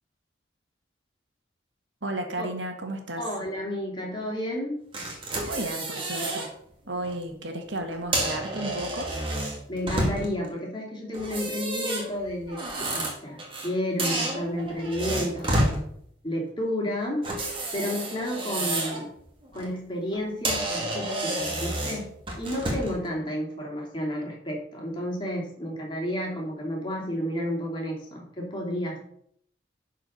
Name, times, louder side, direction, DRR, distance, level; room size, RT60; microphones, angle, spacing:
voice 1, 2.0-3.2 5.5-6.5 6.9-9.1, right 1 dB, 75° right, 4 dB, 1.6 m, -33 dB
voice 2, 3.2-4.8 9.7-15.8 16.2-17.3 17.7-19.1 19.5-22.1 22.4-29.0, equal, 25° left, -2 dB, 2.6 m, -31 dB
sound 1, 4.9-6.5 6.9-7.1 7.9-10.5 11.1-13.7 14.0-15.8 17.2-19.0 19.4-19.7 20.1-20.2 20.4-23.0, right 1 dB, 25° right, 2.0 m, -30 dB
11.5 x 4.7 x 5.4 m, 0.68 s
head